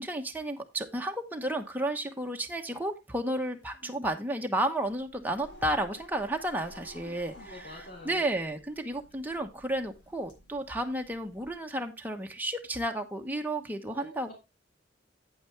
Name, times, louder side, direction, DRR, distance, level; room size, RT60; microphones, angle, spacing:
voice 1, 0.0-7.3 8.0-14.3, right 1 dB, 10° right, 3 dB, 1.1 m, -32 dB
sound 1, 4.8-11.7, left 1 dB, 85° left, 6.1 m, -53 dB
voice 2, 7.0-8.3 9.3-9.4 13.9-14.4, left 1 dB, 55° left, -3 dB, 2.9 m, -48 dB
8.9 x 8.7 x 3.3 m, 0.23 s
head